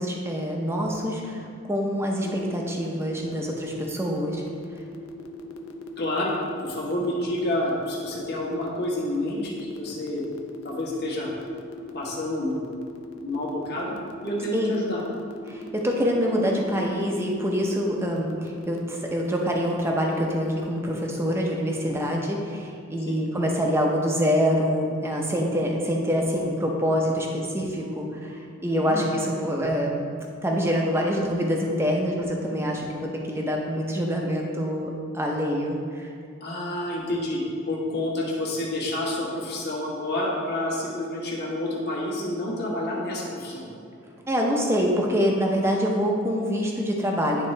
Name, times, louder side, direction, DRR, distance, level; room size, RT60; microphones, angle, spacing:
voice 1, 0.0-1.4 1.7-4.4 14.5-14.7 15.5-30.1 30.4-36.0 44.3-47.5, equal, 10° right, 0 dB, 0.6 m, -25 dB
sound 1, 2.2-20.7, left 5 dB, 75° left, 0.6 m, -41 dB
voice 2, 6.0-6.3 6.6-10.2 10.6-11.3 11.9-12.6 13.2-13.9 14.2-15.0 23.0-23.2 28.7-29.0 36.4-43.6, left 1 dB, 50° left, -4 dB, 1.3 m, -29 dB
10.5 x 3.7 x 3.2 m, 2.3 s
head